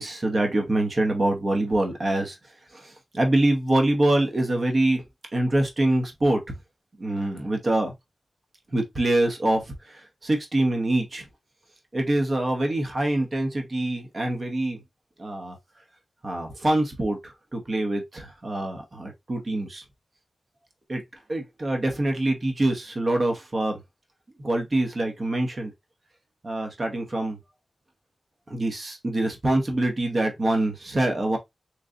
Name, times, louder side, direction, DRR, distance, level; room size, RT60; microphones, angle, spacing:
voice 1, 0.0-2.4 2.7-5.0 5.3-6.4 7.0-7.9 8.7-11.2 11.9-14.8 15.2-15.6 16.2-19.8 20.9-21.0 21.3-23.8 24.4-25.7 26.4-27.4 28.5-31.4, right 1 dB, 40° right, 0.9 m, -25 dB
3.8 x 3.1 x 2.4 m
wide cardioid pair, 125°, 0 cm